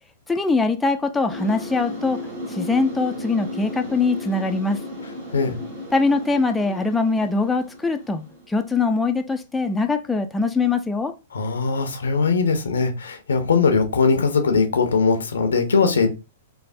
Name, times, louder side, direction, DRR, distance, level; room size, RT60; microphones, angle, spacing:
voice 1, 0.3-4.8 5.9-8.2 8.5-11.2, left 3 dB, 10° left, 0.3 m, -22 dB
sound 1, 1.3-8.9, left 1 dB, 55° right, 1.5 m, -35 dB
voice 2, 11.3-16.1, left 5 dB, 85° left, 0.6 m, -20 dB
3.2 x 2.0 x 2.5 m
hypercardioid pair, 120°, 0 cm